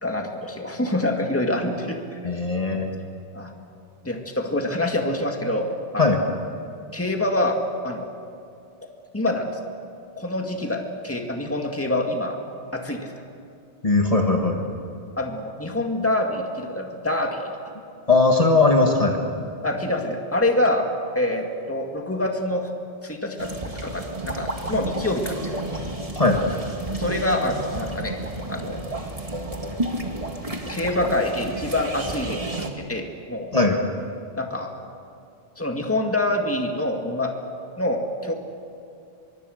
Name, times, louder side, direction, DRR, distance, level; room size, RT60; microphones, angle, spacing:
voice 1, 0.0-2.4 2.7-2.8 3.3-3.5 4.0-6.0 6.9-7.6 7.8-8.1 9.1-9.6 10.2-12.4 12.7-13.1 15.2-17.4 19.6-20.9 21.1-22.7 23.0-25.5 27.0-28.2 28.5-29.0 30.7-33.5 34.4-34.8 35.6-37.3 37.8-38.3, left 1 dB, 15° left, 3 dB, 2.1 m, -26 dB
voice 2, 2.2-2.9 6.0-6.2 13.8-14.6 18.1-19.2 26.2-26.4 33.5-33.8, left 3 dB, 35° left, 1 dB, 1.9 m, -19 dB
sound 1, 23.4-32.7, right 1 dB, 35° right, 2.0 m, -31 dB
24.5 x 23.5 x 6.6 m, 2.6 s
omnidirectional pair, 1.0 m